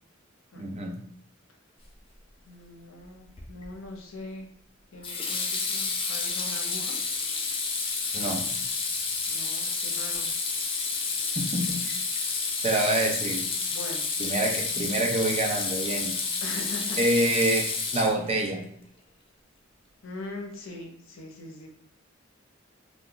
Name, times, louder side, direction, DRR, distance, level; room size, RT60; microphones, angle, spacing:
voice 1, 0.6-1.0 8.1-8.4 11.3-11.9 12.6-13.5 14.2-16.2 17.0-17.6 17.9-18.6, right 2 dB, 30° right, 1 dB, 0.5 m, -26 dB
voice 2, 2.5-4.5 4.9-7.0 9.3-10.3 13.7-14.1 16.4-17.0 20.0-21.7, left 2 dB, 85° left, 1 dB, 0.7 m, -41 dB
Water tap faucet / Sink (filling or washing), 3.4-3.7 5.0-18.5, left 4 dB, 25° left, 0.4 m, -30 dB
2.5 x 2.3 x 3.6 m, 0.63 s
head